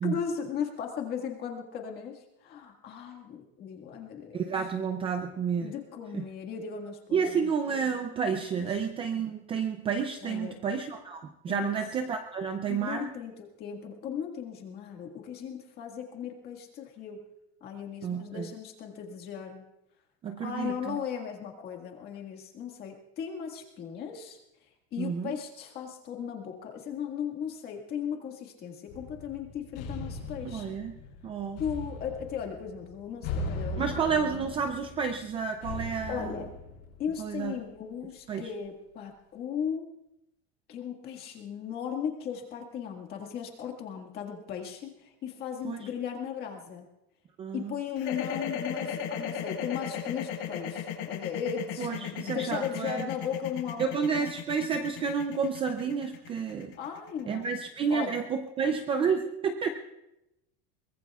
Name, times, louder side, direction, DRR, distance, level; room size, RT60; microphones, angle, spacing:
voice 1, 0.0-4.6 5.6-7.5 8.6-8.7 10.2-10.6 11.4-11.7 12.7-13.3 13.6-17.2 17.6-19.6 20.4-24.4 24.9-30.8 31.6-34.4 36.1-36.5 37.0-39.9 40.7-46.9 47.5-53.9 56.8-57.5 57.9-58.2, left 8 dB, 30° left, 2 dB, 1.8 m, -37 dB
voice 2, 4.3-5.7 6.1-6.2 7.1-13.1 18.0-18.5 20.2-21.0 25.0-25.3 30.4-30.9 31.2-31.6 33.8-36.3 37.2-37.5 38.3-38.5 45.6-45.9 47.4-47.7 51.8-53.1 53.8-56.8 57.3-59.7, right 6 dB, 20° right, 6 dB, 0.5 m, -30 dB
sound 1, 28.9-37.5, left 2 dB, 50° left, 4.5 m, -39 dB
sound 2, 48.0-58.1, left 8 dB, 70° left, 4.4 m, -35 dB
23.0 x 19.5 x 2.4 m, 0.89 s
cardioid pair, 175°, 31 cm